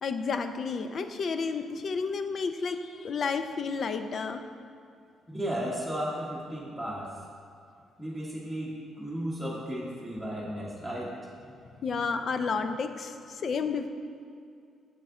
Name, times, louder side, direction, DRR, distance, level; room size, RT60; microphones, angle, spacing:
voice 1, 0.0-4.4 11.8-13.9, left 5 dB, 50° left, 8 dB, 0.5 m, -31 dB
voice 2, 5.3-7.1 8.0-11.1, equal, 5° left, -6 dB, 1.2 m, -34 dB
6.9 x 6.4 x 3.7 m, 2.4 s
cardioid pair, 90°, 0 cm